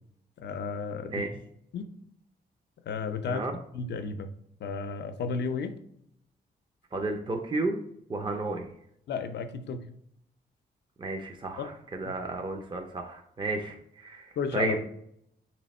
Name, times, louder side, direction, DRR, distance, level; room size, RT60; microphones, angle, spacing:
voice 1, 0.4-1.4 1.7-1.9 2.9-3.5 3.7-4.3 4.6-5.8 9.1-9.8 11.6-11.7 12.0-12.1 14.4-14.8, left 5 dB, 70° left, 9 dB, 0.5 m, -33 dB
voice 2, 6.9-7.8 8.1-8.7 11.0-14.9, right 2 dB, 25° right, 4 dB, 0.6 m, -32 dB
3.4 x 3.0 x 4.1 m, 0.73 s
cardioid pair, 65°, 19 cm